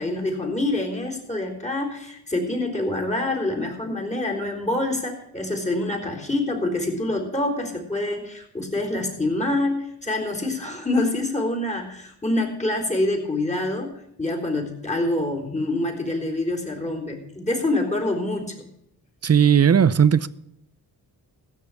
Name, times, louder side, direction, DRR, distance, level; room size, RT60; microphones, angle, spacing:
voice 1, 0.0-18.7, left 2 dB, 15° left, 4.0 m, -26 dB
voice 2, 19.2-20.3, right 8 dB, 35° right, 0.7 m, -16 dB
15.5 x 6.7 x 8.4 m
cardioid pair, 55°, 44 cm